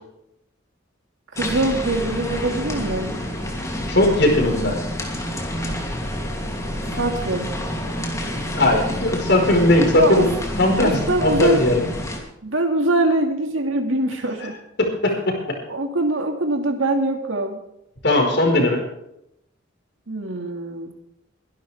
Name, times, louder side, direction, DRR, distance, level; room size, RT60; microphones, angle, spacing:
voice 1, 1.3-3.1 7.0-7.5 9.9-10.3 10.8-11.7 12.4-14.6 15.7-17.6 20.1-20.9, right 2 dB, 90° right, 4 dB, 2.1 m, -23 dB
sound 1, 1.4-12.2, equal, 15° left, 2.8 m, -28 dB
voice 2, 3.9-4.7 8.5-11.9 15.0-15.1 18.0-18.8, left 1 dB, 60° left, 1 dB, 4.8 m, -18 dB
23.0 x 11.5 x 3.5 m, 0.82 s
head